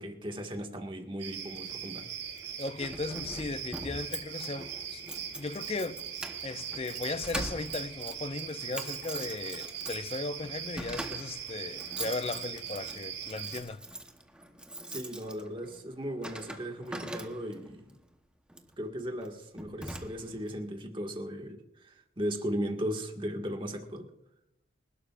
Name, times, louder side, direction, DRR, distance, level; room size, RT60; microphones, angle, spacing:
voice 1, 0.0-2.1 14.9-18.0 18.8-24.1, equal, 25° right, 1.8 m, -37 dB
sound 1, 1.2-13.6, right 8 dB, 80° right, 4.2 m, -41 dB
Keys jangling, 2.4-17.7 18.5-18.7 19.2-19.3 19.6-20.5, right 1 dB, 5° right, 1.0 m, -43 dB
voice 2, 2.6-5.0 5.3-6.0 6.4-13.8, left 3 dB, 30° left, 0.5 m, -37 dB
26.5 x 12.0 x 2.5 m
head